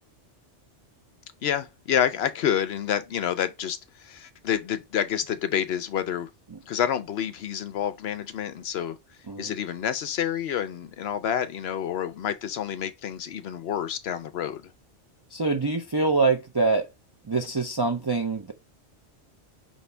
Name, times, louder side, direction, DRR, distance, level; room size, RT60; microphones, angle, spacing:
voice 1, 1.4-6.3 6.6-9.0 9.4-14.7, left 9 dB, 65° left, 0.8 m, -28 dB
voice 2, 15.3-16.9 17.3-18.5, right 3 dB, 40° right, 0.3 m, -25 dB
5.5 x 2.7 x 3.2 m
omnidirectional pair, 1.2 m